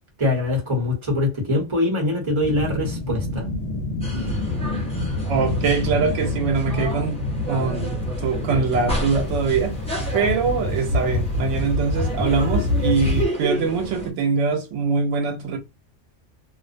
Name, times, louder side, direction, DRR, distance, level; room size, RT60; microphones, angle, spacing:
voice 1, 0.2-3.5, left 2 dB, 25° right, 0.9 m, -23 dB
sound 1, 2.4-13.3, left 1 dB, 70° left, 0.9 m, -26 dB
sound 2, 4.0-14.1, equal, 10° left, 0.5 m, -32 dB
voice 2, 5.3-9.8 10.1-15.6, right 5 dB, 80° right, 0.9 m, -23 dB
2.4 x 2.0 x 2.5 m
omnidirectional pair, 1.2 m